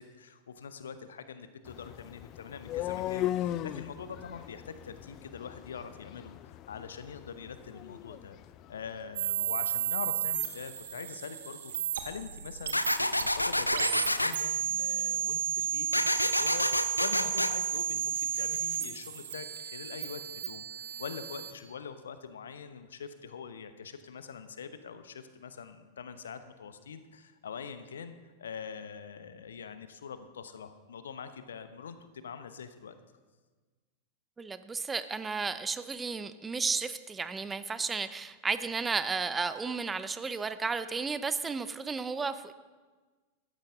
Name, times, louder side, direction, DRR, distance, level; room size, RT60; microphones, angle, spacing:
voice 1, 0.0-8.4 8.7-33.0, left 6 dB, 65° left, 11 dB, 0.9 m, -44 dB
sound 1, 1.7-9.6, left 13 dB, 35° left, 0.4 m, -39 dB
sound 2, 9.2-21.5, right 8 dB, 60° right, 1.2 m, -33 dB
sound 3, 12.7-14.3 15.9-17.5, left 1 dB, 85° left, 0.5 m, -28 dB
voice 2, 34.4-42.5, right 4 dB, 15° right, 13 dB, 0.6 m, -33 dB
14.5 x 13.5 x 3.7 m, 1.4 s
figure-of-eight pair, 90°, 0 cm